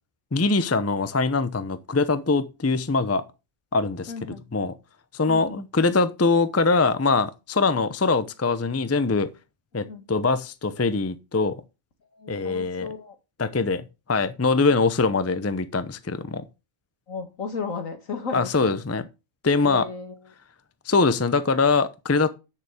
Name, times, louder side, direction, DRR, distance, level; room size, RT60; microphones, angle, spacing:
voice 1, 0.3-3.2 3.7-4.1 4.5-4.7 5.1-9.3 9.7-11.6 12.3-12.9 13.4-16.5 18.3-19.0 19.4-19.8 20.9-22.3, left 4 dB, 20° left, 0.4 m, -23 dB
voice 2, 4.1-4.5 5.3-5.7 9.9-10.1 12.1-13.2 17.1-18.8 19.6-20.3, left 4 dB, 70° left, 2.2 m, -35 dB
9.5 x 6.8 x 4.9 m
omnidirectional pair, 1.4 m